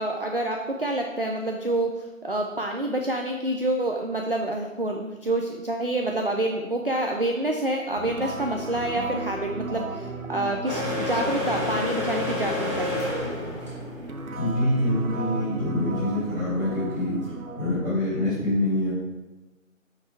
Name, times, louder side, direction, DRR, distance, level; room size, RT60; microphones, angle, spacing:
voice 1, 0.0-13.1, right 1 dB, 45° right, 1 dB, 0.5 m, -27 dB
sound 1, 7.9-18.0, right 3 dB, 80° right, 0.9 m, -35 dB
sound 2, 10.7-17.3, left 2 dB, 20° right, 1.4 m, -31 dB
voice 2, 14.4-17.2 17.5-18.9, left 1 dB, 5° right, -19 dB, 2.3 m, -25 dB
6.0 x 5.2 x 4.7 m, 1.1 s
figure-of-eight pair, 170°, 41 cm